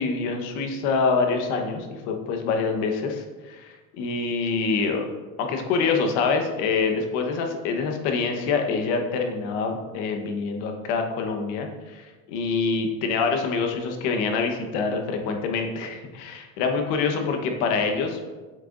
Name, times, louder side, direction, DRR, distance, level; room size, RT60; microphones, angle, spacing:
voice 1, 0.0-5.1 5.4-18.2, left 4 dB, 80° left, 3 dB, 1.2 m, -26 dB
9.0 x 6.6 x 2.6 m, 1.3 s
cardioid pair, 140°, 33 cm